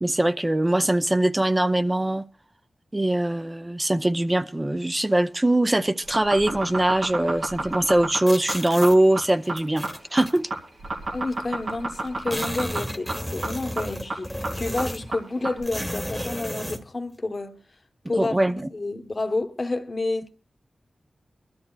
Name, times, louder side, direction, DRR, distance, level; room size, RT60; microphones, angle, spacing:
voice 1, 0.0-2.2 2.9-10.5 18.2-18.6, right 1 dB, 25° right, 0.6 m, -22 dB
sound 1, 6.0-15.6, right 2 dB, 85° right, 2.4 m, -31 dB
sound 2, 8.3-9.0 9.6-10.4 11.3-11.4 11.7-11.8 12.0-15.1 15.6-16.8, equal, 5° right, 1.2 m, -33 dB
voice 2, 11.1-17.5 18.1-20.3, left 2 dB, 45° left, 1.1 m, -29 dB
23.5 x 13.0 x 2.4 m
wide cardioid pair, 65°, 0 cm